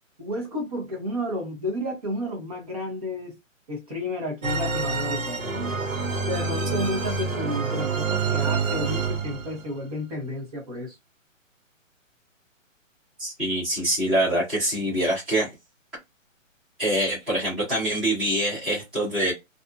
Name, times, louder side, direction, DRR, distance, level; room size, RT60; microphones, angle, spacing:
voice 1, 0.2-3.4 3.7-5.6 6.3-11.0, left 1 dB, 30° right, 1.0 m, -32 dB
sound 1, 4.4-9.6, right 4 dB, 75° right, 1.2 m, -27 dB
voice 2, 13.2-15.5 16.8-19.3, right 1 dB, ahead, 0.9 m, -25 dB
2.6 x 2.5 x 2.3 m
hypercardioid pair, 170°, 40 cm